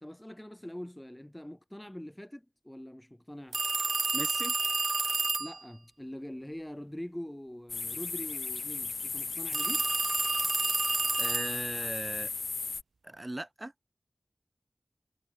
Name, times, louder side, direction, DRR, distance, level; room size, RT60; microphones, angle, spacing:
voice 1, 0.0-3.6 5.4-9.9, left 1 dB, 10° left, 2.8 m, -43 dB
sound 1, 3.5-5.6 9.5-11.7, right 3 dB, 65° right, 1.0 m, -30 dB
voice 2, 4.1-4.5 11.2-12.3 13.0-13.7, right 1 dB, 25° right, 1.2 m, -38 dB
sound 2, 7.7-12.8, left 4 dB, 80° left, 1.5 m, -36 dB
wide cardioid pair, 65°, 0 cm